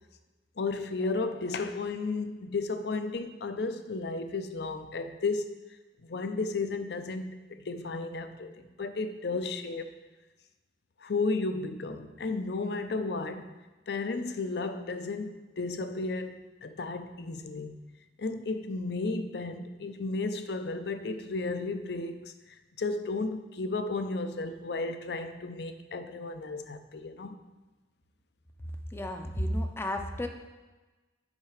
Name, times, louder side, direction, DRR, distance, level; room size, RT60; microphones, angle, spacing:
voice 1, 0.6-5.6 6.0-9.9 11.0-13.5 13.9-17.8 18.2-22.3 22.8-27.4, left 3 dB, 60° left, 0.6 m, -33 dB
voice 2, 28.9-30.3, left 1 dB, 15° left, 0.5 m, -32 dB
7.3 x 4.7 x 4.9 m
head